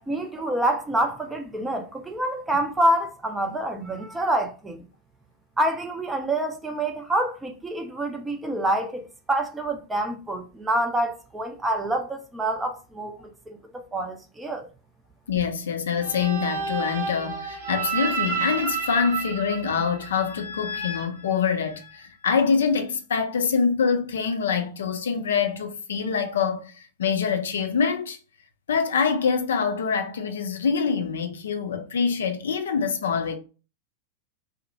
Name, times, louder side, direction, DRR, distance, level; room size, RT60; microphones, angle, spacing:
voice 1, 0.1-4.8 5.6-14.7, right 1 dB, 10° right, 0.5 m, -27 dB
voice 2, 15.3-28.2 28.7-33.4, left 6 dB, 65° left, 0.4 m, -25 dB
sound 1, 16.0-22.0, right 4 dB, 70° right, 0.8 m, -31 dB
2.7 x 2.1 x 2.6 m
figure-of-eight pair, 90°, 0 cm